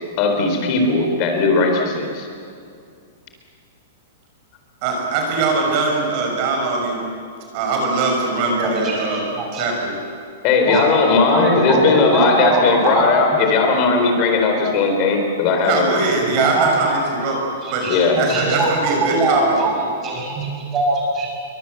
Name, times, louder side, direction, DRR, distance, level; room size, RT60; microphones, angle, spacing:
voice 1, 0.2-2.3 10.4-15.9 17.9-18.2, left 4 dB, 30° left, 3 dB, 4.1 m, -17 dB
voice 2, 4.8-7.0 7.5-9.2 9.5-10.0 15.6-17.4 17.7-17.8 18.2-19.6, right 3 dB, 35° right, 1 dB, 5.8 m, -21 dB
voice 3, 8.6-9.7 10.7-10.8 11.3-13.1 13.3-13.4 16.3-17.0 17.6-21.3, right 2 dB, 15° right, -1 dB, 6.4 m, -22 dB
28.5 x 24.0 x 7.9 m, 2.3 s
supercardioid pair, 175°, 0 cm